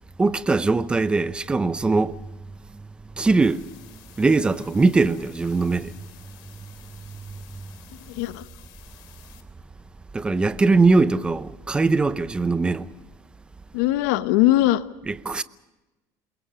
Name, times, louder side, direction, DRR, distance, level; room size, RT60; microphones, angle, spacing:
voice 1, 0.2-2.3 2.7-6.3 7.1-7.4 10.1-12.9 15.1-15.4, right 3 dB, 10° right, 0.7 m, -22 dB
continuous static, 3.4-9.4, left 13 dB, 60° left, 3.0 m, -51 dB
voice 2, 8.1-8.4 13.7-14.8, left 15 dB, 80° left, 1.1 m, -20 dB
27.5 x 22.0 x 5.0 m
cardioid pair, 155°, 9 cm